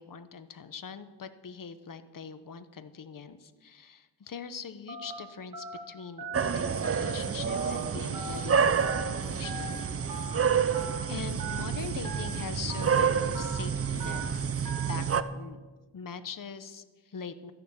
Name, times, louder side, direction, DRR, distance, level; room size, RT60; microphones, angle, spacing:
voice 1, 0.0-10.2 11.1-14.6 14.9-15.6 15.9-17.5, left 6 dB, 45° left, 11 dB, 1.0 m, -42 dB
Telephone, 4.9-5.1 5.5-5.8 6.2-6.4 6.8-7.1 7.5-7.7 8.1-8.4 8.8-9.0 9.4-9.7 10.1-10.3 10.7-11.0 11.4-11.6 12.0-12.3 12.7-12.9 13.3-13.6 14.0-14.2 14.6-14.9, right 2 dB, 45° right, 2.4 m, -39 dB
sound 1, 6.3-15.2, right 6 dB, 30° right, 0.5 m, -29 dB
13.5 x 11.0 x 7.2 m, 1.3 s
wide cardioid pair, 110°, 47 cm